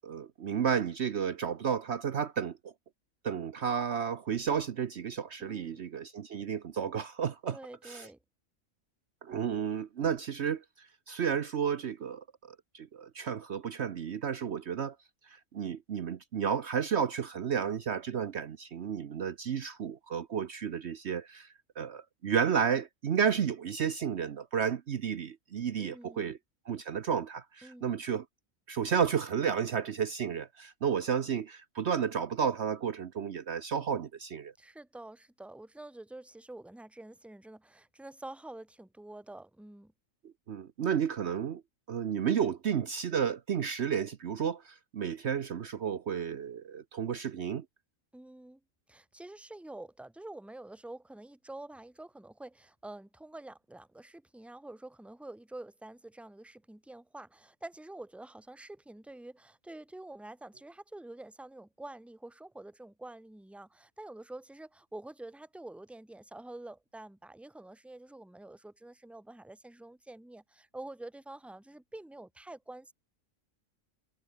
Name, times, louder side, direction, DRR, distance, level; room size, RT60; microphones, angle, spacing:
voice 1, 0.0-2.6 3.2-7.6 7.8-8.1 9.2-14.9 15.3-21.5 21.8-26.4 26.7-28.2 28.7-34.5 40.5-41.6 41.9-47.6, right 7 dB, 60° right, 1.1 m, -32 dB
voice 2, 5.4-5.8 7.5-8.2 25.8-26.3 27.6-27.9 34.6-39.9 48.1-48.6 48.9-72.9, right 2 dB, ahead, 1.6 m, -47 dB
omnidirectional pair, 1.4 m